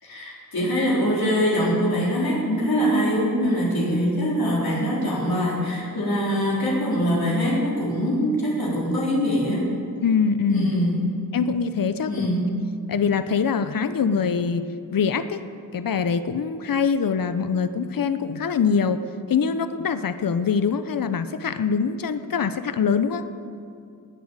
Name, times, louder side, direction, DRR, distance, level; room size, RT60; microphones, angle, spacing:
voice 1, 0.0-9.7 10.5-11.0 12.1-12.5, equal, 85° left, -5 dB, 3.9 m, -23 dB
voice 2, 10.0-10.7 11.3-12.3 12.9-14.6 14.9-15.4 15.7-19.0 19.3-23.2, left 6 dB, 70° left, 11 dB, 0.8 m, -23 dB
20.0 x 7.3 x 9.0 m, 2.4 s
wide cardioid pair, 70°, 35 cm